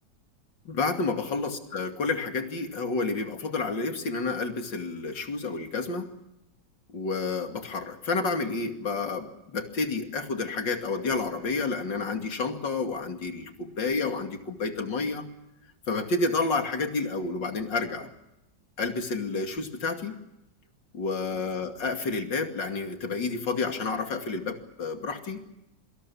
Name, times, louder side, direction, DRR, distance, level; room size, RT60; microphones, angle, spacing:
voice 1, 0.6-6.1 6.9-15.2 15.9-18.1 18.8-20.2 20.9-25.4, left 3 dB, 80° left, 5 dB, 3.2 m, -30 dB
27.0 x 25.0 x 7.1 m, 0.88 s
omnidirectional pair, 1.9 m